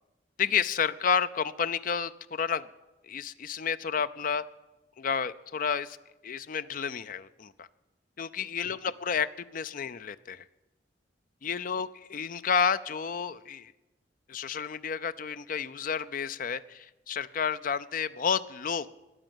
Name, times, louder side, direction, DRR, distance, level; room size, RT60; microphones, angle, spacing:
voice 1, 0.4-2.7 3.0-4.4 5.0-6.0 6.2-7.7 8.2-10.4 11.4-13.7 14.3-18.9, left 6 dB, 50° left, 14 dB, 0.5 m, -30 dB
13.0 x 9.9 x 9.1 m, 1.0 s
head